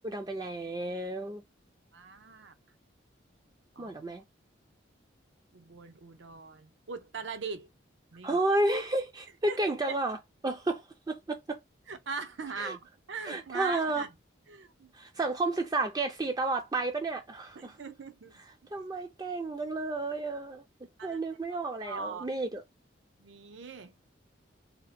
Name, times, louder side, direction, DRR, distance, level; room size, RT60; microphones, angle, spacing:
voice 1, 0.0-1.4 3.8-4.2 8.2-10.2 10.4-11.6 12.6-12.8 13.3-14.0 14.9-17.7 18.7-20.6 21.0-22.6, right 2 dB, 20° right, 0.3 m, -31 dB
voice 2, 1.9-2.5 3.7-3.9 5.5-7.7 8.1-8.4 9.5-9.6 9.9-10.0 11.9-14.1 14.5-14.9 17.5-18.4 18.7-18.8 21.0-21.2 21.5-22.3 23.2-23.9, right 5 dB, 70° right, 0.6 m, -41 dB
2.8 x 2.1 x 4.1 m
head